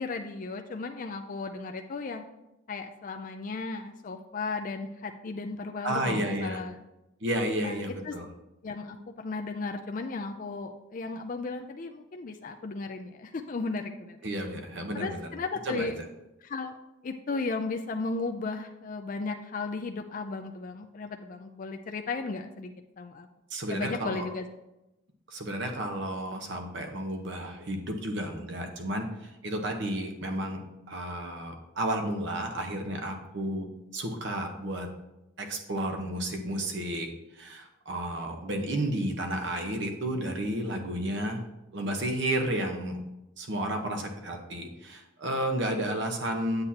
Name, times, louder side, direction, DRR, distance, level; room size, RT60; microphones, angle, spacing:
voice 1, 0.0-2.2 2.7-6.8 7.6-7.8 8.0-8.2 8.6-14.2 14.9-15.9 16.4-16.8 17.0-23.3 23.7-24.5, left 3 dB, 40° left, 5 dB, 0.4 m, -35 dB
voice 2, 5.8-6.6 7.2-8.3 14.2-15.3 15.6-15.9 23.5-24.2 25.3-30.6 30.9-33.6 33.9-34.9 35.4-37.1 37.3-41.4 41.7-43.0 43.4-46.6, right 1 dB, 60° right, 4 dB, 1.1 m, -32 dB
8.0 x 7.9 x 2.8 m, 0.93 s
head